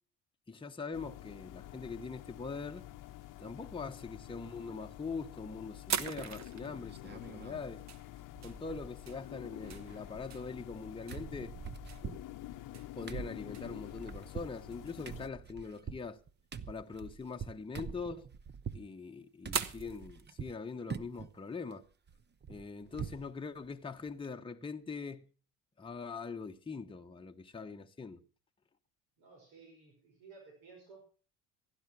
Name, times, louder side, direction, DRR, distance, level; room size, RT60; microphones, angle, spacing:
voice 1, 0.5-2.8 3.4-7.8 8.4-11.5 12.9-16.2 16.7-18.3 18.7-21.9 22.5-25.3 25.8-28.2, left 4 dB, 15° left, 1.0 m, -42 dB
sound 1, 0.9-15.3, left 14 dB, 55° left, 0.9 m, -49 dB
sound 2, 2.8-3.4 4.2-4.8 5.2-5.3 5.9-14.1 14.5-15.0 15.4-15.5 15.7-15.8 16.1-16.4 16.7-16.8 17.7-18.9 19.5-21.6, right 8 dB, 45° right, 1.2 m, -42 dB
sound 3, 6.2-6.5 6.9-7.7 8.0-8.1 8.4-9.2 9.5-10.8 11.1-18.9 19.4-20.6 20.9-21.3 21.7-23.3 23.6-23.7 24.1-24.3, right 6 dB, 25° right, 0.9 m, -45 dB
voice 2, 29.2-31.0, right 4 dB, 80° right, 5.4 m, -56 dB
15.5 x 11.0 x 6.1 m
hypercardioid pair, 70°, 39 cm